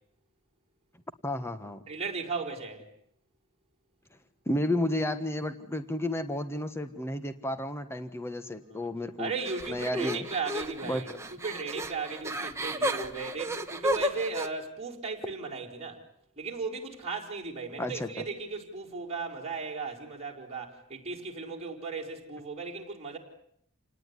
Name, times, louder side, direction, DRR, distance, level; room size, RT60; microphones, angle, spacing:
voice 1, 1.2-1.8 4.5-9.3 9.7-10.3 10.8-11.0 17.8-18.2, left 1 dB, 10° left, 1.3 m, -32 dB
voice 2, 1.9-2.9 9.2-16.0 16.4-23.2, right 4 dB, 30° right, 4.9 m, -36 dB
sound 1, 9.5-14.5, equal, 15° right, 1.6 m, -33 dB
28.5 x 19.0 x 9.8 m
head